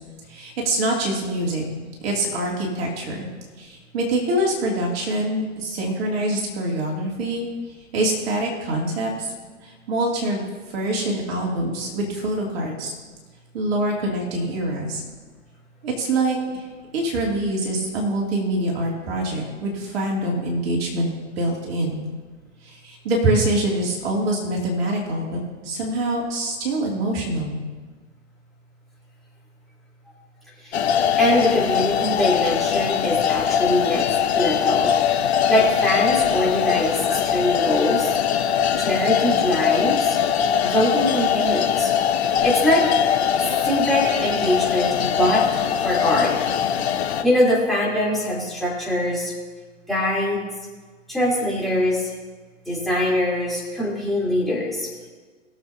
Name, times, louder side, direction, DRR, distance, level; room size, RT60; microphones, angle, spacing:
voice 1, 0.3-1.6 2.0-3.3 3.6-7.5 7.9-9.3 9.6-10.4 10.7-12.9 13.5-15.0 15.8-16.7 16.9-21.1 21.4-22.1 22.6-27.6, right 1 dB, 50° right, -2 dB, 2.8 m, -25 dB
sound 1, 30.7-47.2, left 8 dB, 55° left, 1.1 m, -21 dB
voice 2, 31.2-34.0 34.3-34.9 35.5-38.2 38.8-40.2 40.6-42.8 43.4-45.4 45.8-46.3 47.2-49.3 49.9-50.4 51.1-52.1 52.7-54.9, left 1 dB, ahead, -9 dB, 3.7 m, -22 dB
21.5 x 7.3 x 2.8 m, 1.4 s
figure-of-eight pair, 110°, 39 cm